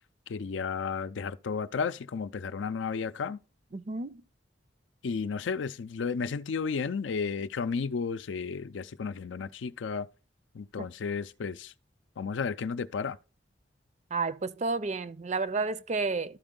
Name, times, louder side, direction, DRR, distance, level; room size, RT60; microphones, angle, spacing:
voice 1, 0.3-3.4 5.0-10.1 10.5-11.7 12.2-13.2, left 5 dB, 85° left, 0.5 m, -33 dB
voice 2, 3.7-4.2 14.1-16.4, right 3 dB, 40° right, 0.5 m, -31 dB
12.5 x 4.4 x 3.8 m
head